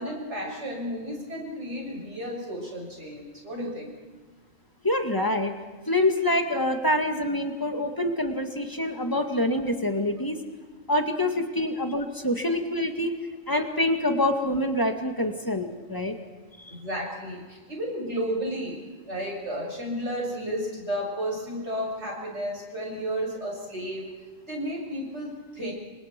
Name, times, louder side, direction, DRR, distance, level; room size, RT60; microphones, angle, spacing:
voice 1, 0.0-3.9 12.5-12.6 16.7-18.8 19.1-24.1 24.5-25.7, equal, 60° right, -1 dB, 7.6 m, -32 dB
voice 2, 4.8-5.5 5.9-10.4 10.9-13.1 13.5-16.1 16.6-16.8, left 1 dB, 15° left, 4 dB, 2.0 m, -26 dB
29.5 x 25.0 x 4.6 m, 1.4 s
omnidirectional pair, 1.4 m